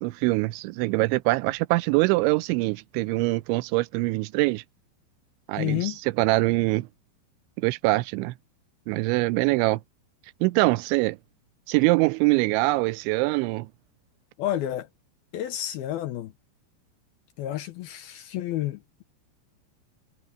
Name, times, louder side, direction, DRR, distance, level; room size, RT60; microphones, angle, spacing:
voice 1, 0.0-4.6 5.5-6.9 7.6-8.3 8.9-9.8 10.4-11.2 11.7-13.7, right 22 dB, 90° right, 3.0 m, -23 dB
voice 2, 5.6-6.0 14.4-14.9 15.3-16.3 17.4-19.0, left 13 dB, 75° left, 2.5 m, -30 dB
omnidirectional pair, 5.2 m